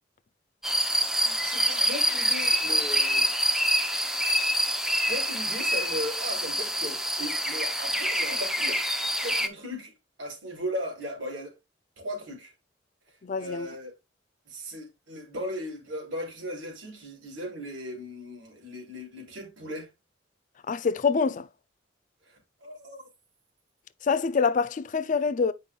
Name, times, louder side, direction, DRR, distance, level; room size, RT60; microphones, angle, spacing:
sound 1, 0.6-9.5, equal, 5° right, 0.6 m, -26 dB
voice 1, 1.1-3.3 5.0-9.0 9.2-9.9 10.2-11.5 12.0-12.5 13.4-13.9 14.5-19.9 22.3-23.0, equal, 85° right, 3.2 m, -37 dB
voice 2, 13.2-13.7 20.7-21.5 24.1-25.5, left 5 dB, 45° left, 0.4 m, -25 dB
8.6 x 5.4 x 2.3 m
head